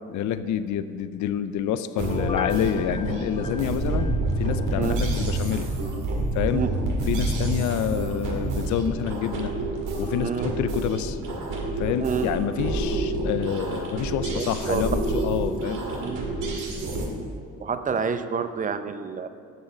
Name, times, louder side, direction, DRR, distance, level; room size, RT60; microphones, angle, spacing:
voice 1, 0.1-5.7 6.3-6.6 7.1-9.5 10.0-11.2 11.8-15.9, left 9 dB, 75° left, 12 dB, 0.5 m, -28 dB
Piano, 2.0-4.7 5.1-5.2, left 4 dB, 20° left, 0.5 m, -35 dB
sound 1, 2.0-17.1, right 2 dB, 85° right, 1.9 m, -28 dB
voice 2, 10.2-10.5 12.0-12.3 14.3-14.8 16.0-16.3 16.9-17.0 17.6-19.3, right 6 dB, 25° right, 10 dB, 0.6 m, -28 dB
9.3 x 6.4 x 7.2 m, 2.3 s
cardioid pair, 90°, 30 cm